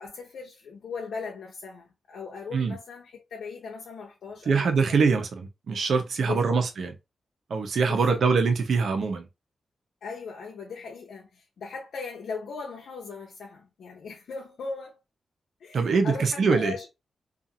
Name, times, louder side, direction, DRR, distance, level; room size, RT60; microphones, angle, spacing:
voice 1, 0.0-5.0 6.2-6.6 7.9-8.2 10.0-15.0 15.6-16.9, left 4 dB, 85° left, 0.6 m, -38 dB
voice 2, 4.5-6.9 7.5-9.3 15.7-16.7, right 5 dB, 75° right, 0.7 m, -23 dB
2.6 x 2.4 x 2.6 m
cardioid pair, 70°, 0 cm